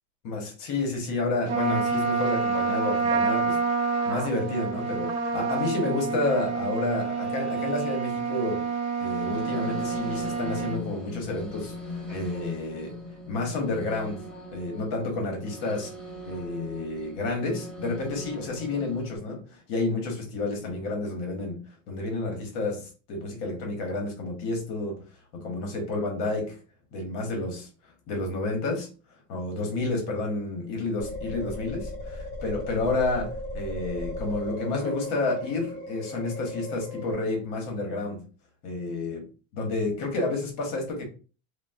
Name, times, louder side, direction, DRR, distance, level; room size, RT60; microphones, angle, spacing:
voice 1, 0.2-3.6 4.0-8.7 9.0-12.9 13.3-14.2 14.5-15.9 16.3-21.6 21.9-25.0 25.3-26.6 26.9-27.7 28.1-28.9 29.3-38.2 38.6-39.3 39.5-41.0, left 2 dB, 45° left, 0.8 m, -30 dB
Trumpet, 1.5-10.8, right 5 dB, 45° right, 0.6 m, -28 dB
sound 1, 9.2-19.2, left 1 dB, 20° right, 0.9 m, -40 dB
sound 2, 31.0-37.1, left 1 dB, 15° left, 1.0 m, -36 dB
3.3 x 2.0 x 2.4 m
cardioid pair, 175°, 45 cm